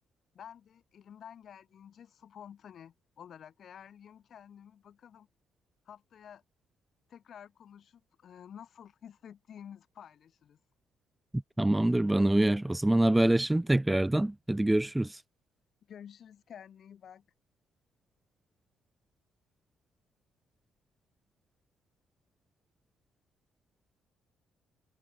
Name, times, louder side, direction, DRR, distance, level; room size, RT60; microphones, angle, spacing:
voice 1, 0.3-5.3 5.8-6.4 7.1-10.6 15.9-17.3, left 8 dB, 60° left, 5.1 m, -51 dB
voice 2, 11.6-15.2, right 1 dB, 10° right, 0.3 m, -25 dB
supercardioid pair, 75°, 0 cm